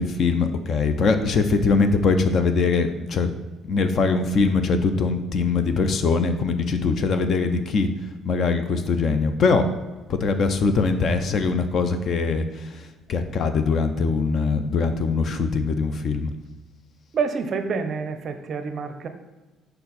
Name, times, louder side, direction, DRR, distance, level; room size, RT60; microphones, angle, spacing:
voice 1, 0.0-3.3 3.7-7.9 8.2-9.7 10.1-16.3, left 4 dB, 40° left, 9 dB, 0.5 m, -22 dB
voice 2, 17.1-19.1, right 5 dB, 40° right, 8 dB, 0.5 m, -27 dB
5.3 x 4.4 x 4.1 m, 1.2 s
cardioid pair, 155°, 0 cm